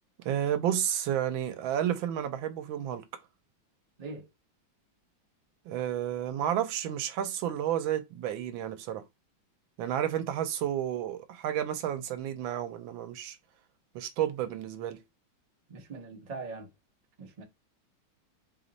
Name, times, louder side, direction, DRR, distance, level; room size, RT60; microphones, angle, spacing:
voice 1, 0.2-3.0 5.7-9.0 9.8-13.4 13.9-15.0, right 10 dB, 75° right, 1.3 m, -31 dB
voice 2, 15.7-16.7 17.2-17.4, right 3 dB, 55° right, 0.4 m, -41 dB
3.4 x 3.0 x 3.9 m
omnidirectional pair, 2.2 m